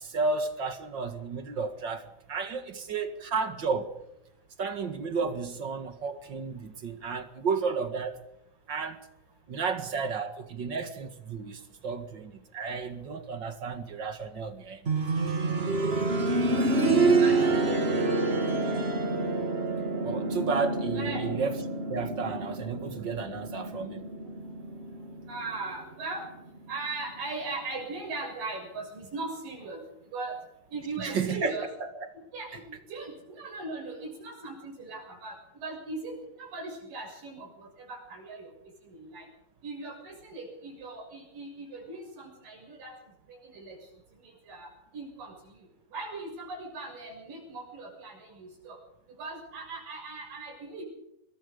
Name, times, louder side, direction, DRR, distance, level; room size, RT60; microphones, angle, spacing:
voice 1, 0.0-3.9 4.6-8.2 8.7-9.0 9.5-14.9 20.0-21.6 21.9-24.1 31.0-32.1, right 5 dB, 40° right, 2.0 m, -32 dB
sound 1, 14.9-25.6 27.0-27.1, right 3 dB, 25° right, 1.7 m, -27 dB
voice 2, 17.0-17.6 20.9-21.2 25.3-26.3 26.7-29.8 30.1-30.4 30.7-31.7 32.3-38.5 38.9-39.3 39.6-42.9 43.3-43.8 44.2-45.3 45.9-48.8 49.2-50.8, right 3 dB, 90° right, 8.4 m, -39 dB
25.5 x 21.0 x 5.2 m
omnidirectional pair, 3.8 m